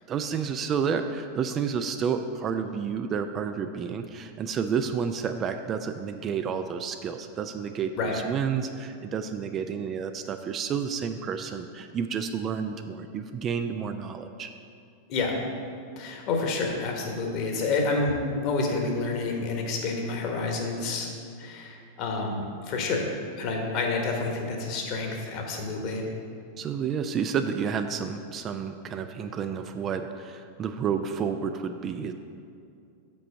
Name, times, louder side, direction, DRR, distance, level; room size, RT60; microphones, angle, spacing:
voice 1, 0.1-14.5 26.6-32.1, right 6 dB, 30° right, 7 dB, 0.4 m, -30 dB
voice 2, 16.0-21.1 21.4-23.1 23.4-26.0, left 3 dB, 40° left, 2 dB, 1.3 m, -29 dB
6.1 x 5.3 x 6.9 m, 2.4 s
figure-of-eight pair, 90°, 0 cm